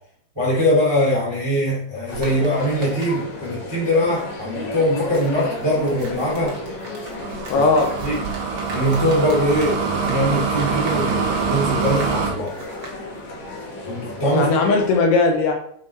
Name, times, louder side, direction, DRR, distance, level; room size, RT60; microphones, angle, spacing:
voice 1, 0.3-6.6 7.5-7.6 8.0-8.2 8.7-12.5 13.8-14.5, equal, 10° right, -5 dB, 1.5 m, -22 dB
sound 1, 2.1-15.0, left 2 dB, 55° left, 3.1 m, -34 dB
sound 2, 2.1-3.5 3.7-13.0, right 2 dB, 85° right, 1.2 m, -39 dB
sound 3, 7.2-12.3, right 5 dB, 65° right, 2.3 m, -25 dB
voice 2, 7.5-7.9 14.3-15.5, left 3 dB, 75° left, 2 dB, 2.7 m, -18 dB
6.2 x 5.9 x 4.4 m, 0.68 s
omnidirectional pair, 5.1 m